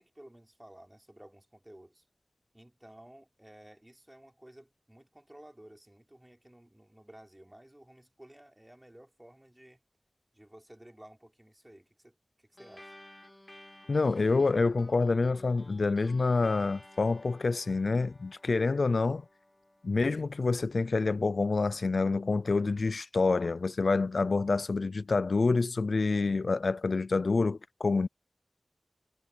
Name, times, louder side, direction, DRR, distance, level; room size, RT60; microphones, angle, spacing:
voice 1, 0.0-2.1 2.5-9.8 10.3-13.0, right 1 dB, 15° right, 4.0 m, -54 dB
sound 1, 12.6-21.4, left 1 dB, 25° left, 3.0 m, -55 dB
voice 2, 13.9-19.2 19.8-28.1, left 3 dB, 80° left, 0.4 m, -27 dB
wide cardioid pair, 45°, 0 cm